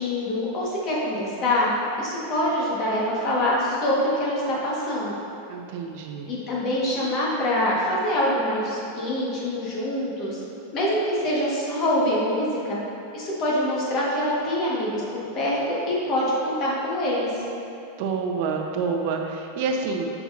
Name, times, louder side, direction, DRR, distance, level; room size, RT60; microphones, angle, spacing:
voice 1, 0.0-1.7 2.0-5.2 6.3-10.4 10.7-12.8 13.1-17.4, left 1 dB, 30° left, -5 dB, 1.2 m, -25 dB
voice 2, 5.5-6.3 18.0-20.1, right 5 dB, 45° right, 2 dB, 0.6 m, -28 dB
7.8 x 5.7 x 2.5 m, 2.7 s
supercardioid pair, 170°, 0 cm